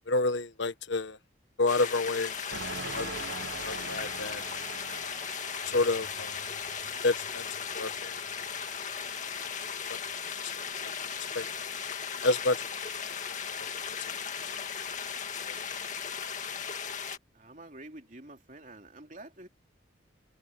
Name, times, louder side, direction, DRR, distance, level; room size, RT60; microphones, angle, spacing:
voice 1, 0.1-1.2 1.6-2.3 2.9-3.2 3.6-4.4 5.7-6.4 7.0-7.4 7.7-8.2 10.4-10.5 11.3-11.5 12.2-12.7 13.0-13.2 13.6-13.7, left 2 dB, 70° left, 1.4 m, -29 dB
sound 1, 1.7-17.2, left 7 dB, 40° left, 2.1 m, -37 dB
sound 2, 2.5-11.7, right 4 dB, 80° right, 1.3 m, -45 dB
voice 2, 17.3-19.5, right 2 dB, 45° right, 3.6 m, -48 dB
head